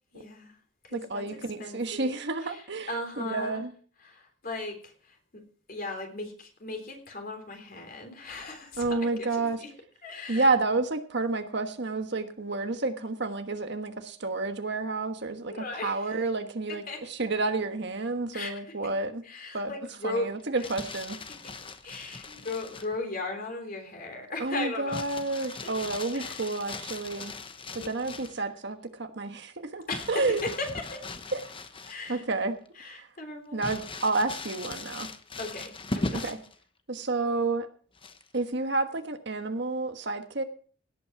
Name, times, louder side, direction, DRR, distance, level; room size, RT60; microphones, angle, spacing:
voice 1, 0.1-0.5 0.8-1.2 1.6-2.1 2.4-2.6 2.9-3.7 4.0-5.4 5.7-9.7 10.0-10.5 15.5-16.1 16.7-17.0 18.3-18.5 19.2-20.3 21.4-21.5 21.8-25.0 25.4-25.9 26.1-26.4 27.7-28.1 29.9-31.1 31.8-32.2 32.8-33.7 35.4-36.4, left 2 dB, 45° left, 4 dB, 3.5 m, -37 dB
voice 2, 0.9-2.9 3.3-3.7 8.8-9.6 10.3-19.2 19.5-19.7 20.0-21.2 22.3-22.4 24.4-27.3 27.8-30.5 31.3-31.4 32.1-32.6 32.9-33.1 33.5-35.1 36.1-36.4 36.9-37.7 38.3-40.4, right 3 dB, 60° right, 7 dB, 1.4 m, -30 dB
Crumpling crinkling, 20.4-23.0 24.9-28.4 29.9-32.2 32.7-32.8 33.6-36.5 38.0-38.4, left 3 dB, 25° left, 1.0 m, -39 dB
17.5 x 8.7 x 4.7 m, 0.43 s
head